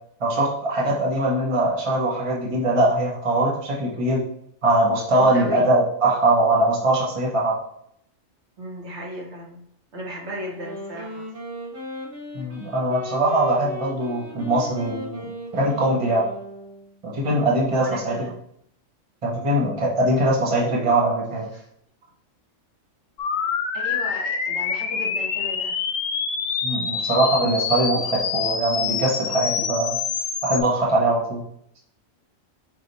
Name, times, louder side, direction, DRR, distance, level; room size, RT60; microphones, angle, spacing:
voice 1, 0.2-4.2 4.6-7.6 12.3-15.3 15.5-16.3 17.0-18.3 19.2-21.5 26.6-29.9 30.4-31.4, right 1 dB, 30° right, -3 dB, 0.9 m, -21 dB
voice 2, 5.1-5.7 8.6-9.6 9.9-11.2 17.7-18.4 21.5-21.7 23.7-25.8, equal, 60° right, -2 dB, 1.4 m, -35 dB
Wind instrument woodwind instrument, 10.5-17.0, left 1 dB, 45° right, 1.3 m, -37 dB
sound 1, 23.2-30.6, left 6 dB, 85° left, 1.0 m, -26 dB
4.8 x 2.4 x 4.0 m, 0.70 s
omnidirectional pair, 1.3 m